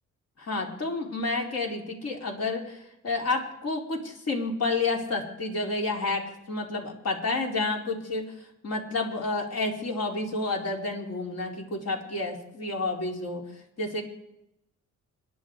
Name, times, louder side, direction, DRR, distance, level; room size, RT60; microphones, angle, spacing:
voice 1, 0.4-13.4 13.8-14.0, left 3 dB, 55° left, 1 dB, 4.3 m, -30 dB
26.5 x 11.0 x 4.8 m, 0.84 s
cardioid pair, 100°, 30 cm